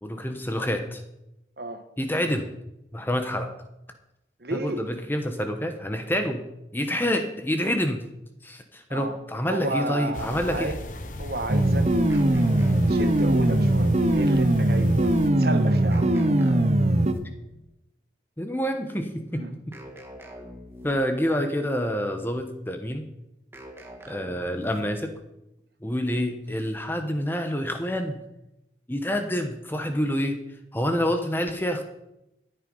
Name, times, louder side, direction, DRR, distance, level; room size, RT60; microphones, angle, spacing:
voice 1, 0.0-1.0 2.0-2.5 2.9-3.5 4.5-6.4 6.7-8.0 8.4-10.7 18.4-19.8 20.8-23.1 24.1-25.1 25.8-28.2 28.9-30.4 30.7-31.8, equal, 10° left, 1.0 m, -27 dB
voice 2, 4.4-4.8 8.9-9.1 9.5-10.8 11.2-11.9 12.9-16.2 19.3-19.5, right 2 dB, 55° right, 1.2 m, -32 dB
sound 1, 10.1-15.3, left 1 dB, 45° left, 1.0 m, -37 dB
sound 2, 11.5-17.1, right 1 dB, 35° right, 0.8 m, -21 dB
sound 3, 12.1-13.9 15.9-17.6 19.7-21.3 23.5-25.1, equal, 15° right, 1.4 m, -44 dB
14.0 x 9.3 x 5.5 m
head